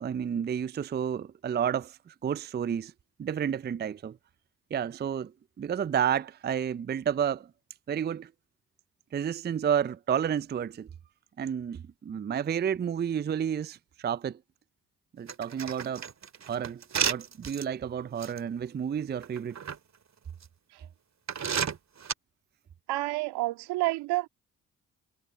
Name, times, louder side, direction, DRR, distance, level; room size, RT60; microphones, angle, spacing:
voice 1, 0.0-2.9 3.2-4.2 4.7-5.3 5.6-7.5 7.9-8.3 9.1-10.9 11.4-14.4 15.2-16.1 16.4-19.6, right 8 dB, 25° right, 0.5 m, -31 dB
sound 1, 15.3-17.6 18.2-18.4 19.2-19.8 20.4-20.5 21.3-22.1, right 7 dB, 45° right, 2.2 m, -31 dB
voice 2, 22.9-24.3, right 19 dB, 75° right, 2.3 m, -29 dB
hypercardioid pair, 40°, 39 cm